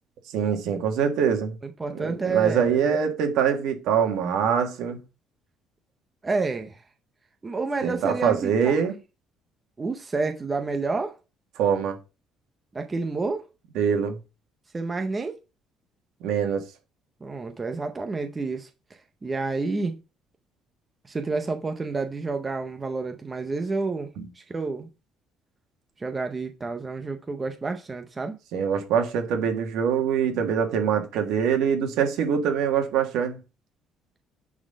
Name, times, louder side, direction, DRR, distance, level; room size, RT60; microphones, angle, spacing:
voice 1, 0.3-1.6 1.9-5.0 7.8-8.9 11.6-12.0 13.8-14.2 16.2-16.6 24.2-24.3 28.5-33.4, right 7 dB, 70° right, 1.8 m, -24 dB
voice 2, 1.6-3.0 6.2-6.8 7.4-8.8 9.8-11.1 12.7-13.5 14.7-15.4 17.2-18.7 19.2-20.0 21.0-24.1 24.4-24.9 26.0-28.3, right 3 dB, 15° right, 0.6 m, -29 dB
9.4 x 4.2 x 5.2 m
cardioid pair, 180°, 0 cm